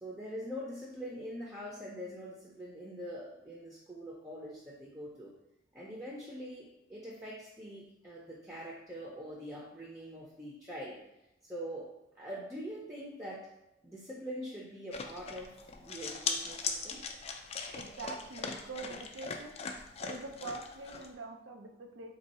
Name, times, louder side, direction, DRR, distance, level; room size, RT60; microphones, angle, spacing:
voice 1, 0.0-5.3 5.7-11.0 11.4-11.9 12.2-13.5 13.8-17.0, equal, 15° right, -5 dB, 0.6 m, -43 dB
sound 1, 14.9-21.1, left 5 dB, 35° left, 0.3 m, -40 dB
voice 2, 17.7-19.5 20.0-22.1, right 3 dB, 85° right, 2 dB, 0.6 m, -44 dB
3.5 x 2.7 x 4.1 m, 0.91 s
head